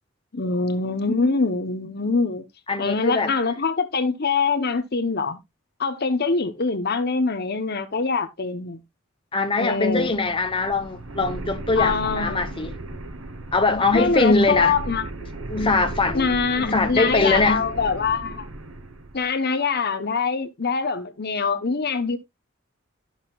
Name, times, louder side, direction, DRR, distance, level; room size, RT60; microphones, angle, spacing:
voice 1, 0.3-2.4 2.8-5.4 5.8-8.8 9.6-10.1 11.8-12.6 13.9-15.1 16.1-18.5 19.1-22.2, left 4 dB, 50° left, 1.0 m, -24 dB
voice 2, 2.7-3.3 9.3-12.7 13.5-14.7 15.5-17.6, left 3 dB, 25° left, 1.0 m, -22 dB
sound 1, 9.7-19.2, right 2 dB, 90° right, 1.2 m, -35 dB
13.0 x 6.5 x 2.4 m
head